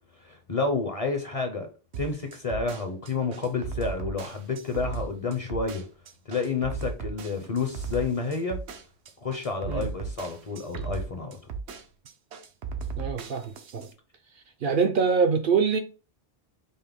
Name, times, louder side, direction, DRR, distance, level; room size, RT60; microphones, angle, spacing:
voice 1, 0.2-1.7 2.0-5.8 6.3-8.6 9.2-11.4, left 4 dB, 40° left, 0.6 m, -30 dB
sound 1, 1.9-13.9, right 5 dB, 80° right, 1.0 m, -36 dB
voice 2, 13.0-13.9 14.6-15.8, right 5 dB, 60° right, 0.6 m, -24 dB
5.3 x 2.1 x 3.4 m
omnidirectional pair, 1.1 m